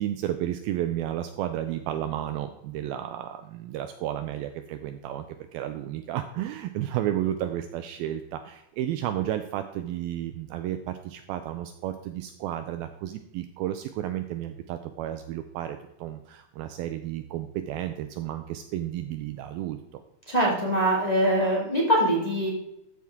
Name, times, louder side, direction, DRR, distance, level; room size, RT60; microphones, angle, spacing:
voice 1, 0.0-5.3 5.5-20.0, right 12 dB, 80° right, 8 dB, 2.2 m, -32 dB
voice 2, 20.3-22.5, right 1 dB, 25° left, -4 dB, 0.9 m, -23 dB
14.0 x 7.5 x 3.6 m, 0.86 s
omnidirectional pair, 4.7 m